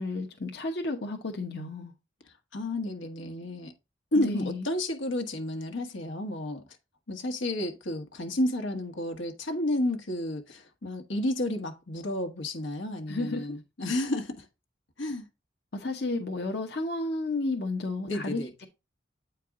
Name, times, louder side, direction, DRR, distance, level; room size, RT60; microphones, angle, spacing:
voice 1, 0.0-1.9 4.2-4.6 13.1-13.4 15.7-18.6, left 2 dB, 60° left, 0.9 m, -32 dB
voice 2, 2.5-3.7 4.1-6.6 7.1-14.5 15.0-15.3 18.1-18.5, left 1 dB, 90° left, 1.5 m, -31 dB
8.5 x 4.6 x 3.6 m
head